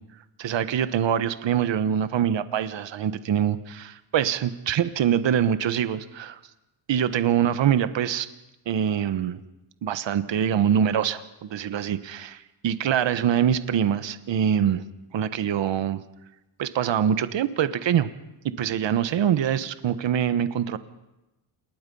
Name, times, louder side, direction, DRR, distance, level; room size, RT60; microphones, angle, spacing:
voice 1, 0.4-6.4 6.9-8.3 8.7-9.4 9.8-14.8 15.1-16.0 16.6-18.1 18.6-20.8, right 9 dB, 60° right, 12 dB, 1.4 m, -24 dB
28.0 x 21.0 x 5.6 m, 0.99 s
cardioid pair, 110°, 50 cm